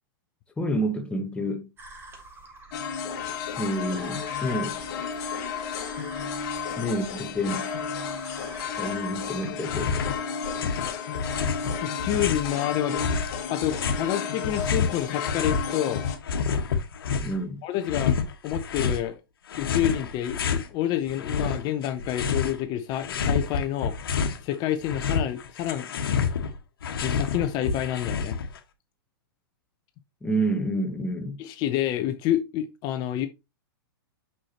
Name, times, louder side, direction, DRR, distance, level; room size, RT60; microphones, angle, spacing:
voice 1, 0.6-1.7 3.3-4.8 6.8-7.7 8.8-10.1 17.2-17.6 30.2-31.4, right 1 dB, 10° left, 0.9 m, -29 dB
sound 1, 1.8-9.5, right 2 dB, 20° right, 1.7 m, -47 dB
sound 2, 2.7-16.2, left 6 dB, 50° left, 1.7 m, -33 dB
sound 3, 9.6-10.2 10.4-12.5 13.0-15.7 15.9-17.4 17.8-19.0 19.5-20.7 21.1-22.6 22.9-24.4 24.7-28.6, left 6 dB, 70° left, 1.4 m, -28 dB
voice 2, 11.8-13.0 13.5-16.0 17.6-18.1 18.4-19.1 19.6-23.9 24.4-25.9 27.0-28.4 31.4-33.3, left 11 dB, 35° left, 0.7 m, -28 dB
6.1 x 5.7 x 2.9 m
hypercardioid pair, 130°, 12 cm